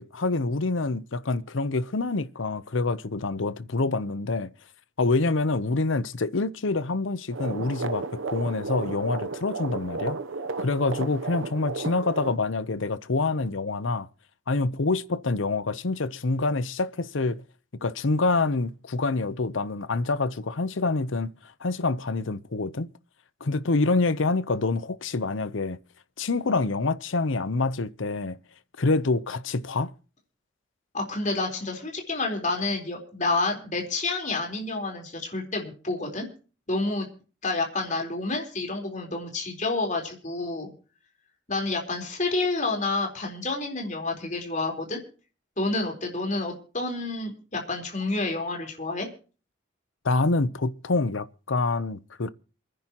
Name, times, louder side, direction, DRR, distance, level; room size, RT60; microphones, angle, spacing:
voice 1, 0.0-4.5 5.0-10.2 10.6-14.1 14.5-17.4 17.8-21.3 21.6-22.9 23.4-25.8 26.2-28.4 28.8-29.9 50.0-52.3, left 3 dB, 75° left, 0.8 m, -26 dB
sound 1, 7.3-12.4, right 3 dB, 80° right, 0.8 m, -33 dB
voice 2, 30.9-36.3 36.7-37.1 37.4-40.7 41.5-45.0 45.6-49.1, left 3 dB, 40° left, 4.0 m, -29 dB
28.0 x 10.5 x 3.0 m
head